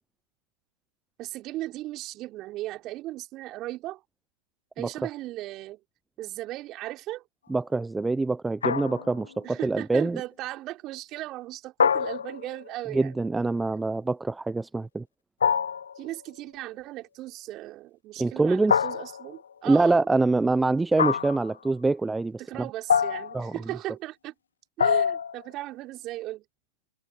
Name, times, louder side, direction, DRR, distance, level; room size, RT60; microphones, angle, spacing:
voice 1, 1.2-4.0 4.8-5.8 6.2-7.2 9.4-13.1 16.0-20.1 22.4-24.3 24.8-26.4, right 16 dB, 30° right, 4.7 m, -37 dB
voice 2, 7.5-10.2 12.9-15.0 18.2-18.8 19.6-22.7 23.3-23.5, right 3 dB, 5° right, 0.9 m, -25 dB
sound 1, 8.6-9.3 11.8-12.7 15.4-16.0 18.7-19.4 21.0-21.5 22.9-23.5 24.8-25.4, left 7 dB, 70° left, 1.0 m, -25 dB
figure-of-eight pair, 115°, 0 cm